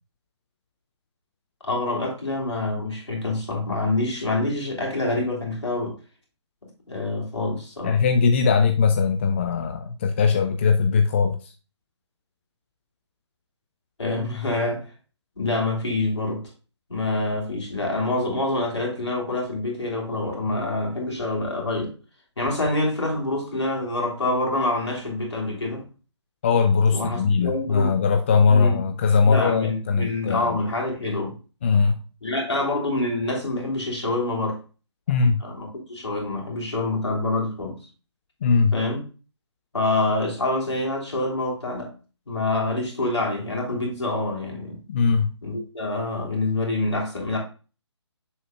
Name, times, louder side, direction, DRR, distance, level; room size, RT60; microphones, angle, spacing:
voice 1, 1.6-6.0 6.9-8.0 14.0-14.8 15.4-16.4 16.9-21.9 22.4-25.8 26.9-28.0 28.5-28.8 29.2-31.3 32.2-34.6 35.4-37.8 38.7-39.0 39.7-41.9 42.3-44.8 45.4-47.4, left 2 dB, 70° left, 3.0 m, -26 dB
voice 2, 7.8-11.5 26.4-30.6 31.6-32.0 35.1-35.4 38.4-38.8 44.9-45.3, left 5 dB, 25° left, 0.3 m, -20 dB
7.0 x 6.5 x 2.3 m
figure-of-eight pair, 140°, 15 cm